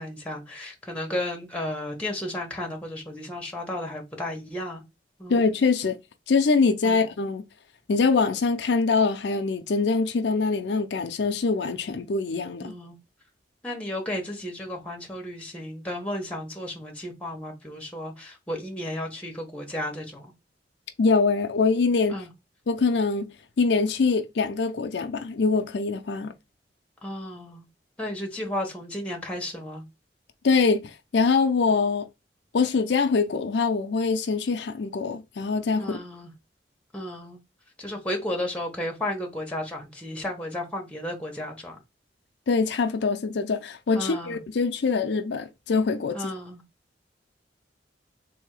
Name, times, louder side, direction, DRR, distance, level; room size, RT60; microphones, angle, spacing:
voice 1, 0.0-4.8 5.2-5.4 6.8-7.0 12.6-13.0 13.6-20.3 22.1-22.3 27.0-27.7 28.0-29.8 35.8-36.3 36.9-37.4 37.8-41.8 43.9-44.4 46.1-46.6, left 1 dB, 5° left, 1.2 m, -33 dB
voice 2, 5.3-6.0 6.3-7.4 7.9-12.7 21.0-22.2 22.7-23.3 23.6-26.3 30.4-32.1 32.5-36.0 42.5-46.3, left 4 dB, 75° left, 0.5 m, -24 dB
3.5 x 2.8 x 4.7 m
head